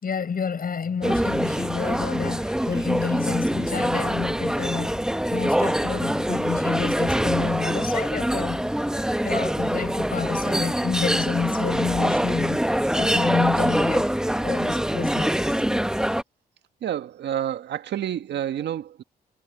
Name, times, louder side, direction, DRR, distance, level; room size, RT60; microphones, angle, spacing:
voice 1, 0.0-8.7 9.2-15.6, left 6 dB, 50° left, 6.4 m, -29 dB
sound 1, 1.0-16.2, equal, 5° right, 1.2 m, -24 dB
voice 2, 16.8-19.0, right 10 dB, 70° right, 1.8 m, -29 dB
hypercardioid pair, 50°, 19 cm